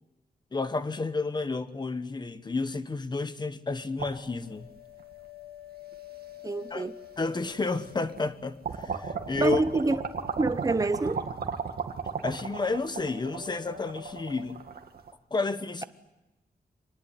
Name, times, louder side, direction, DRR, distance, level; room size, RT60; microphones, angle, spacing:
voice 1, 0.5-4.7 6.7-6.9 7.2-9.6 12.2-14.6 15.3-15.8, left 3 dB, 25° left, 1.1 m, -31 dB
sound 1, 3.7-11.8 12.1-12.6 13.0-14.7, left 14 dB, 80° left, 5.4 m, -49 dB
sound 2, 4.0-5.1 5.9-6.0 7.2-7.3 7.7-8.3 8.6-15.1, right 6 dB, 75° right, 2.1 m, -35 dB
voice 2, 6.4-6.9 9.4-10.0 10.4-11.3, right 3 dB, 20° right, 0.9 m, -26 dB
25.5 x 19.5 x 9.2 m
wide cardioid pair, 180°, 16 cm